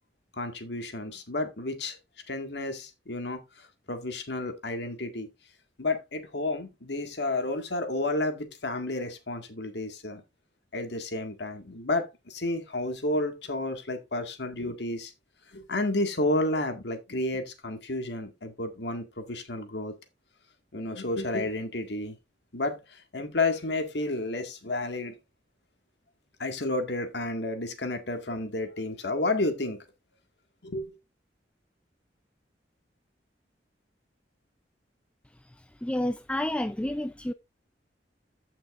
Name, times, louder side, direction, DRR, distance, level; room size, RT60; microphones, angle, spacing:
voice 1, 0.4-2.0 2.3-3.4 3.9-5.3 5.8-10.2 10.7-15.1 15.5-19.9 20.7-22.1 22.5-25.2 26.4-29.8 30.6-30.9, left 2 dB, 70° left, 1.9 m, -31 dB
voice 2, 35.8-37.3, left 1 dB, 5° left, 0.4 m, -29 dB
15.0 x 5.9 x 2.5 m
head